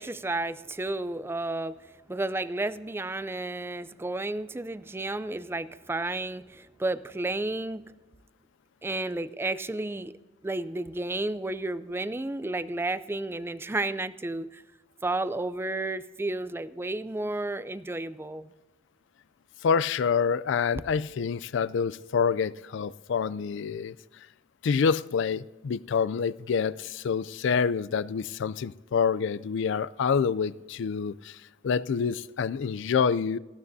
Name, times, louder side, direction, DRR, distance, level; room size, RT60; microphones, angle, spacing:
voice 1, 0.0-1.8 2.1-7.8 8.8-10.2 10.4-14.6 15.0-18.5, right 2 dB, 10° right, 0.4 m, -32 dB
voice 2, 19.6-23.9 24.6-31.4 31.6-33.4, left 6 dB, 65° left, 0.4 m, -27 dB
19.0 x 14.5 x 2.7 m
head